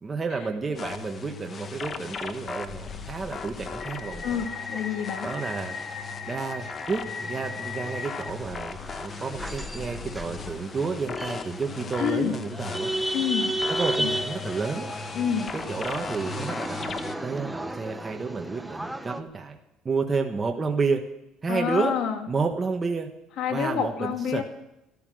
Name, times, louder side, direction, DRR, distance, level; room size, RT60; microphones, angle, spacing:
voice 1, 0.0-4.4 5.2-5.7 6.3-12.9 13.7-14.9 15.5-19.6 19.8-21.0 21.4-21.9 22.3-23.1 23.5-24.4, right 4 dB, 25° right, 3 dB, 1.3 m, -30 dB
sound 1, 0.7-17.2, left 5 dB, 35° left, 1.2 m, -37 dB
sound 2, 4.1-19.2, right 1 dB, 5° right, 0.9 m, -35 dB
voice 2, 4.2-5.3 12.0-12.4 13.1-13.5 14.0-14.1 15.1-15.5 21.5-22.2 23.4-24.4, left 8 dB, 65° left, 6 dB, 2.1 m, -27 dB
13.5 x 12.5 x 6.3 m, 0.86 s
cardioid pair, 120°, 0 cm